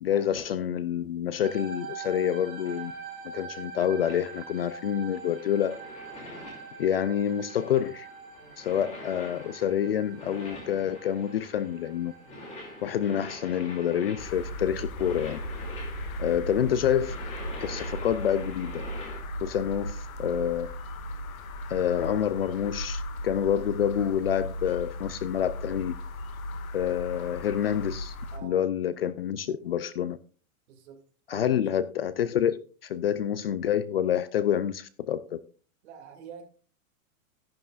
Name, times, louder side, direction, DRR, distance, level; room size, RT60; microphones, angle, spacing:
voice 1, 0.0-2.9 3.2-5.8 6.8-8.1 8.6-12.1 12.8-15.4 16.2-17.2 17.6-18.8 19.4-20.7 21.7-25.9 26.7-28.1 28.4-30.2 31.3-35.4, left 9 dB, 45° left, 0.4 m, -27 dB
sound 1, 1.4-14.9, right 5 dB, 20° right, 2.5 m, -45 dB
sound 2, 2.7-3.2 4.0-19.2, left 2 dB, 15° left, 2.7 m, -46 dB
sound 3, 14.2-28.4, equal, 75° left, 2.0 m, -36 dB
voice 2, 28.3-28.6 30.7-31.0 31.3-31.7 35.8-36.4, right 6 dB, 50° right, 2.6 m, -46 dB
11.5 x 11.5 x 2.4 m
supercardioid pair, 175°, 43 cm